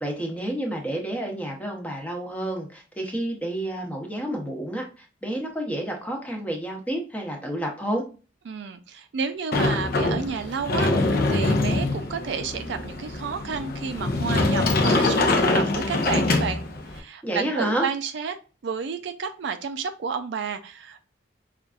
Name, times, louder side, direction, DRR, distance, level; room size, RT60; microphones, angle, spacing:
voice 1, 0.0-8.0 17.2-17.8, right 1 dB, 10° left, 1 dB, 0.8 m, -30 dB
voice 2, 8.5-16.6 16.9-18.4 18.6-21.0, right 5 dB, 65° right, 8 dB, 0.4 m, -31 dB
Sliding door, 9.5-17.0, left 2 dB, 50° left, 0.6 m, -24 dB
5.2 x 2.4 x 2.3 m, 0.34 s
head